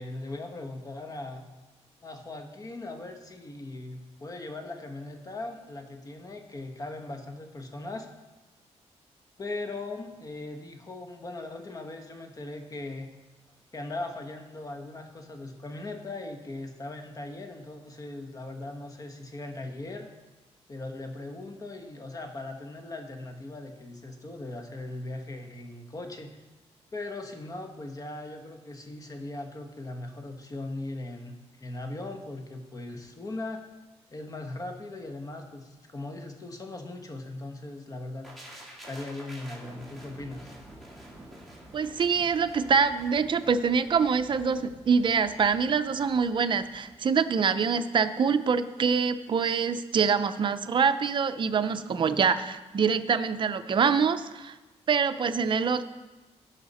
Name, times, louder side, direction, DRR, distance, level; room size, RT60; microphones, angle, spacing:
voice 1, 0.0-1.4 2.0-8.1 9.4-13.1 13.7-20.1 20.7-26.4 26.9-33.6 34.1-38.3 38.9-40.5, left 2 dB, 30° left, 5 dB, 1.3 m, -39 dB
sound 1, 38.2-48.1 48.4-48.6, right 1 dB, ahead, 2.1 m, -49 dB
voice 2, 41.7-54.5 54.9-55.8, right 6 dB, 45° right, 9 dB, 0.6 m, -25 dB
16.5 x 5.7 x 4.2 m, 1.1 s
cardioid pair, 110°, 12 cm